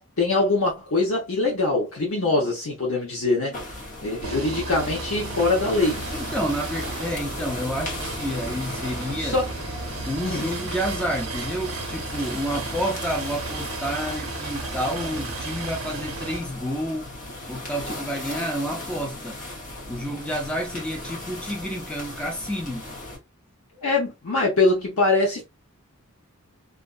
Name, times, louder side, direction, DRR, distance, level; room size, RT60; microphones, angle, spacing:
voice 1, 0.2-3.6 4.0-6.1 9.2-9.4 10.2-10.5 23.8-25.4, left 2 dB, 80° left, 0.9 m, -23 dB
sound 1, 3.5-23.2, left 2 dB, 40° left, 0.9 m, -37 dB
sound 2, 4.2-16.4, right 3 dB, 70° right, 0.5 m, -34 dB
voice 2, 6.1-9.4 10.1-17.1 17.5-19.4 19.9-22.9, equal, 5° left, 0.5 m, -29 dB
2.5 x 2.3 x 2.3 m
head